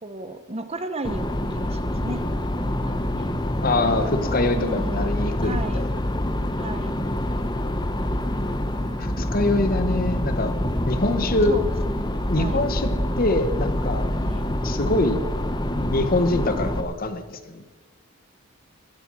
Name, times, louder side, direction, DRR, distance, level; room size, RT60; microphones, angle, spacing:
voice 1, 0.0-2.2 2.8-3.3 4.2-5.1 5.4-5.8 6.6-6.9 8.7-9.3 11.4-12.6 14.2-14.8, right 2 dB, 30° right, 10 dB, 1.0 m, -35 dB
sound 1, 1.0-16.8, left 1 dB, 20° left, 1.1 m, -26 dB
voice 2, 3.6-5.9 9.0-10.6 10.9-11.6 12.3-14.1 14.6-15.2 15.7-17.6, left 2 dB, 45° left, 10 dB, 1.1 m, -24 dB
15.5 x 12.5 x 6.2 m, 1.3 s
head